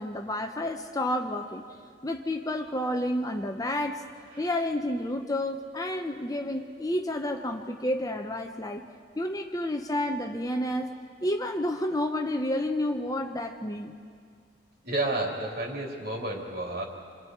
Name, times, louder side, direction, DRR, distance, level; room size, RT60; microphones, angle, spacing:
voice 1, 0.0-1.6 2.0-4.0 4.4-8.8 9.2-10.9 11.2-13.9, left 1 dB, 20° left, 4 dB, 0.9 m, -30 dB
voice 2, 14.8-16.8, right 2 dB, 55° right, -1 dB, 3.7 m, -31 dB
29.0 x 26.0 x 4.7 m, 2.1 s
head